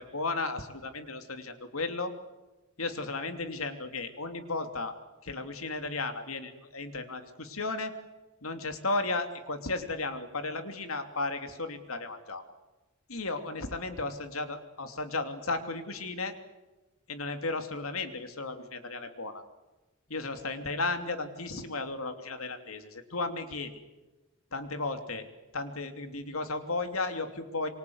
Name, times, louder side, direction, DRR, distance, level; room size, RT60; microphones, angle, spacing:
voice 1, 0.0-2.1 2.8-4.9 5.2-7.9 8.4-12.4 13.1-16.3 17.1-19.4 20.1-23.7 24.5-25.2 25.5-27.7, left 3 dB, 90° left, 8 dB, 2.9 m, -34 dB
26.5 x 24.0 x 8.0 m, 1.1 s
head